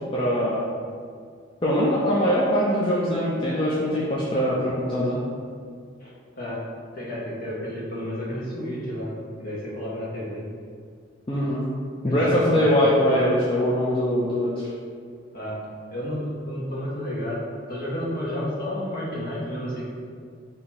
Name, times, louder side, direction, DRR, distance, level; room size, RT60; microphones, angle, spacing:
voice 1, 0.1-0.6 1.6-5.2 11.3-11.6 12.0-14.5, equal, 25° left, -7 dB, 0.5 m, -22 dB
voice 2, 6.3-6.7 6.9-10.4 12.0-12.7 15.3-15.6 15.9-19.9, equal, 45° left, -7 dB, 1.1 m, -31 dB
4.2 x 2.8 x 4.1 m, 2.1 s
head